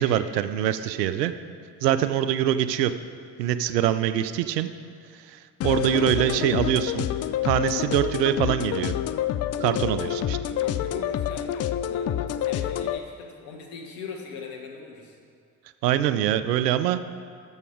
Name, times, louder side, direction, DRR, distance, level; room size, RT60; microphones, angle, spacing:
voice 1, 0.0-1.3 1.8-2.9 3.4-4.7 5.3-5.4 5.6-7.1 7.4-8.9 9.6-10.4 15.8-17.0, right 11 dB, 80° right, 13 dB, 0.6 m, -24 dB
sound 1, 5.6-13.0, left 10 dB, 35° left, 0.4 m, -28 dB
voice 2, 9.8-15.2, left 5 dB, 70° left, 0 dB, 1.7 m, -41 dB
12.5 x 7.2 x 4.8 m, 2.3 s
figure-of-eight pair, 50°, 49 cm